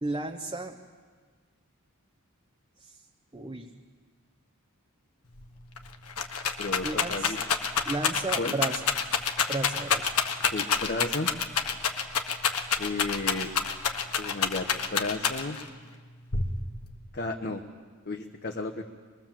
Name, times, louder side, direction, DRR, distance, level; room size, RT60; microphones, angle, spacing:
voice 1, 0.0-0.7 3.3-3.7 6.8-7.3 7.8-8.8 9.5-10.1, right 2 dB, 20° right, 3 dB, 1.0 m, -33 dB
Rattle, 5.4-5.5 5.8-15.7 16.3-16.9, left 6 dB, 80° left, 1.6 m, -28 dB
voice 2, 6.6-7.4 8.4-8.6 10.5-11.3 12.8-13.5 14.2-15.6 17.1-17.6 18.0-18.8, left 3 dB, 45° left, 3 dB, 1.3 m, -33 dB
24.5 x 21.5 x 7.6 m, 1.5 s
head